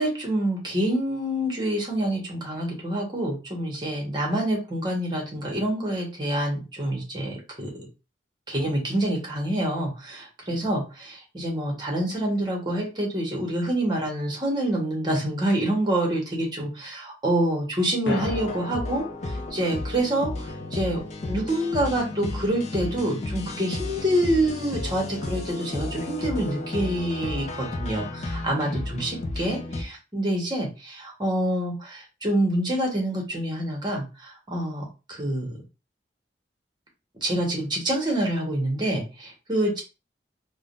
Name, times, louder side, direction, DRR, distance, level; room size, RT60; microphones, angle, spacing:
voice 1, 0.0-7.9 8.5-20.3 20.7-35.5 37.2-39.8, right 1 dB, 25° right, 0 dB, 1.1 m, -27 dB
sound 1, 18.1-22.4, left 2 dB, 75° left, 0.8 m, -39 dB
sound 2, 18.1-29.8, left 2 dB, 40° left, 0.4 m, -33 dB
3.5 x 2.2 x 2.5 m, 0.30 s
head